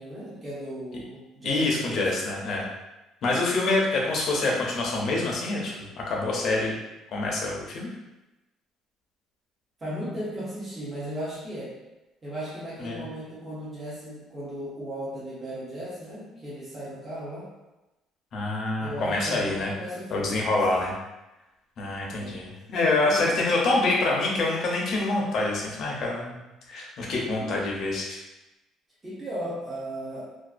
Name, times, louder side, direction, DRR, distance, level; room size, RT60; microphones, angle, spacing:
voice 1, 0.0-2.2 9.8-11.8 12.2-17.5 18.8-20.4 22.1-22.4 22.8-23.4 27.4-27.6 29.0-30.3, equal, 15° right, -9 dB, 0.6 m, -36 dB
voice 2, 1.4-2.6 3.2-6.8 7.1-7.9 12.8-13.0 18.3-19.7 20.1-20.9 21.8-26.4 26.7-28.2, left 2 dB, 45° left, -2 dB, 0.5 m, -26 dB
2.4 x 2.3 x 2.4 m, 1.0 s
cardioid pair, 170°, 0 cm